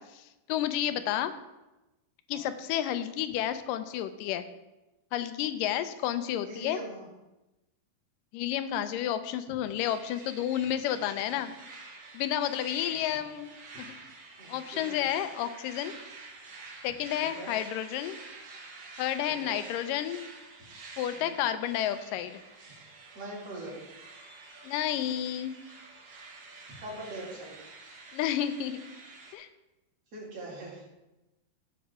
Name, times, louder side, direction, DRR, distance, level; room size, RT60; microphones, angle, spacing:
voice 1, 0.0-1.3 2.3-4.5 5.1-6.8 8.3-11.5 12.1-14.0 14.5-15.9 16.8-18.2 19.0-20.3 21.0-22.4 24.6-25.6 28.1-28.8 29.3-29.5, left 11 dB, 80° left, 11 dB, 2.1 m, -31 dB
voice 2, 0.8-1.2 2.3-2.5 6.5-7.1 11.1-11.2 12.9-13.2 14.4-15.1 17.3-17.5 19.4-19.6 21.1-21.3 23.1-23.8 26.7-27.5 30.1-30.8, right 2 dB, 45° right, -4 dB, 3.4 m, -42 dB
sound 1, 9.8-29.3, right 3 dB, 65° right, 1.0 m, -48 dB
15.5 x 6.0 x 3.6 m, 1.0 s
omnidirectional pair, 4.0 m